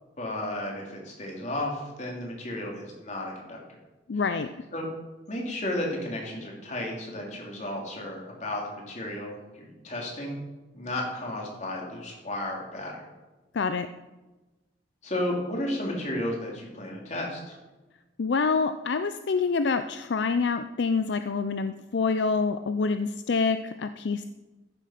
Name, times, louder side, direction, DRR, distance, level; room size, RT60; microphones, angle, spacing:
voice 1, 0.2-3.6 4.7-4.9 5.3-10.4 10.7-12.9 15.0-17.6, left 1 dB, 40° left, -1 dB, 3.2 m, -33 dB
voice 2, 4.1-4.5 13.5-13.9 18.2-24.2, left 4 dB, 70° left, 10 dB, 0.5 m, -26 dB
14.5 x 7.5 x 5.9 m, 1.1 s
head